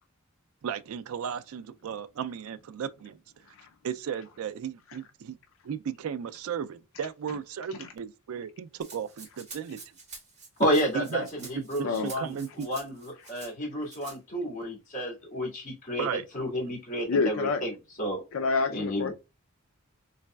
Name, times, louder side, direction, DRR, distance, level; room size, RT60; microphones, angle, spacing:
voice 1, 0.6-3.2 3.8-5.4 5.6-9.8 10.9-12.7 16.0-16.3, right 7 dB, 75° right, 0.4 m, -35 dB
Rattle (instrument), 8.8-13.5 13.9-14.2, right 4 dB, 35° right, 1.6 m, -47 dB
voice 2, 10.6-16.1 16.3-18.2 18.7-19.1, equal, 35° left, 1.8 m, -31 dB
voice 3, 17.1-17.6 18.3-19.1, left 4 dB, 65° left, 0.4 m, -27 dB
4.0 x 3.3 x 2.2 m
head